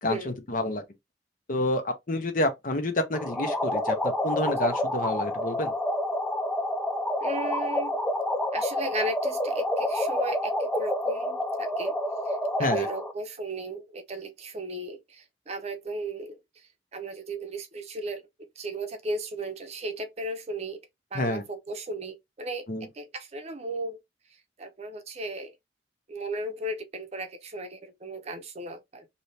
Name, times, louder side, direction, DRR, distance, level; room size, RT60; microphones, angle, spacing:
voice 1, 0.0-0.8 1.5-5.7 12.6-12.9 21.1-21.4 22.7-22.9, left 1 dB, 50° left, 0.8 m, -29 dB
sound 1, 3.1-13.1, left 1 dB, 5° left, 0.3 m, -28 dB
voice 2, 7.2-7.9 8.5-11.9 12.3-16.7 16.9-18.2 18.6-20.8 21.1-22.7 22.9-24.0 24.6-25.5 26.1-29.1, right 2 dB, 40° right, 0.7 m, -35 dB
2.8 x 2.7 x 3.2 m
head